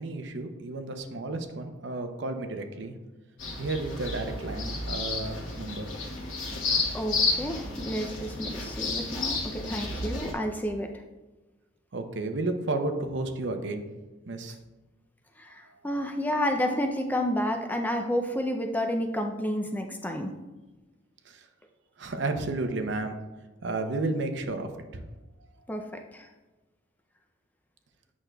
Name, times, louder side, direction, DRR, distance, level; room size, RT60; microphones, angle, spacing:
voice 1, 0.0-3.0 3.6-5.8 11.9-13.8 14.3-14.6 21.3-21.4 22.0-23.2 23.6-25.0, right 2 dB, 65° right, 7 dB, 0.6 m, -32 dB
sound 1, 3.4-10.3, left 3 dB, 85° left, 1.2 m, -31 dB
voice 2, 6.9-11.0 15.4-20.3 25.7-26.3, equal, 10° left, 4 dB, 0.4 m, -30 dB
8.6 x 6.0 x 2.2 m, 1.1 s
head